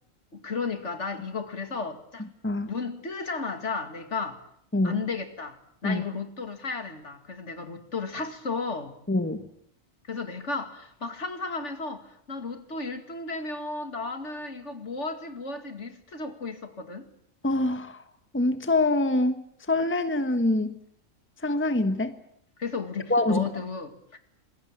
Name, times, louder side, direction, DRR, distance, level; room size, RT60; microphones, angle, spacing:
voice 1, 0.3-2.3 2.7-4.4 4.8-5.6 5.8-9.0 10.0-17.1 22.6-24.2, left 4 dB, 60° left, 2.6 m, -34 dB
voice 2, 9.1-9.5 17.4-18.0 18.3-20.8 21.4-22.1 23.1-23.4, left 2 dB, 10° left, 1.4 m, -25 dB
27.0 x 21.0 x 8.8 m
omnidirectional pair, 1.4 m